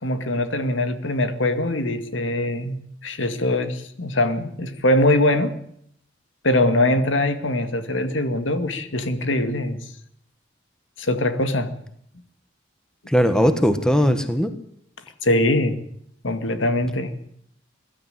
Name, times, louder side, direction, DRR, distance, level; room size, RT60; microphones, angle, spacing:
voice 1, 0.0-5.5 6.4-9.8 11.0-11.7 15.2-15.8 16.2-17.1, left 1 dB, 85° left, 9 dB, 2.2 m, -22 dB
voice 2, 13.1-14.5, equal, 5° left, 9 dB, 1.5 m, -19 dB
22.0 x 13.0 x 9.3 m, 0.69 s
head